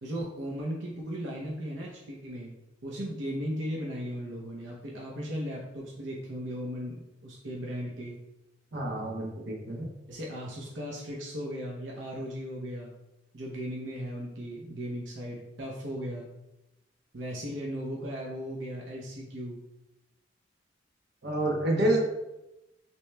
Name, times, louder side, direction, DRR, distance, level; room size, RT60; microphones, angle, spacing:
voice 1, 0.0-2.5 2.8-8.2 10.1-12.9 13.3-16.3 17.1-19.6, equal, 80° right, -3 dB, 0.7 m, -37 dB
voice 2, 8.7-9.9 21.2-22.0, right 1 dB, 60° right, -1 dB, 1.0 m, -28 dB
6.1 x 3.0 x 2.3 m, 0.95 s
head